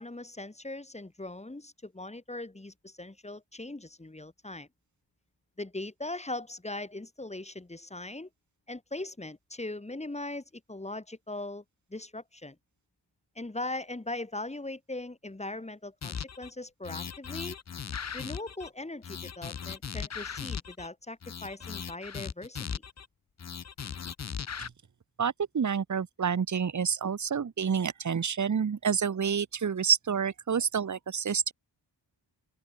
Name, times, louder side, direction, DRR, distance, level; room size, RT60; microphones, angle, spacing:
voice 1, 0.0-4.7 5.6-8.3 8.7-11.6 11.9-12.6 13.3-17.6 18.1-22.8, left 2 dB, 15° left, 4.5 m, -40 dB
sound 1, 16.0-16.5 16.8-18.7 19.0-20.9 21.2-23.1 23.4-24.7, left 7 dB, 35° left, 0.9 m, -38 dB
voice 2, 25.2-31.5, right 7 dB, 40° right, 1.4 m, -28 dB
open air
wide cardioid pair, 110°, 44 cm